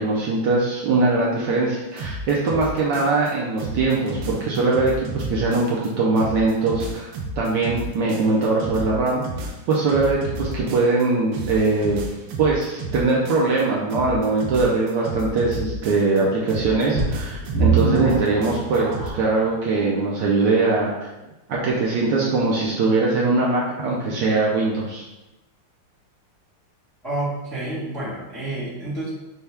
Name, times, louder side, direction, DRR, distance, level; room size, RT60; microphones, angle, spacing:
voice 1, 0.0-9.2 9.7-12.0 12.4-21.1 21.5-25.0, right 3 dB, 70° right, -4 dB, 1.1 m, -21 dB
sound 1, 2.0-3.3 3.6-5.9 6.2-11.1 11.3-13.6 13.9-16.2 16.5-19.1, right 2 dB, 85° right, 1.5 m, -32 dB
sound 2, 16.9-19.4 20.0-20.1 20.7-20.8, right 5 dB, 50° right, 1.2 m, -23 dB
voice 2, 27.0-29.1, right 2 dB, 20° left, -8 dB, 0.7 m, -29 dB
5.5 x 2.3 x 3.4 m, 1.0 s
omnidirectional pair, 2.3 m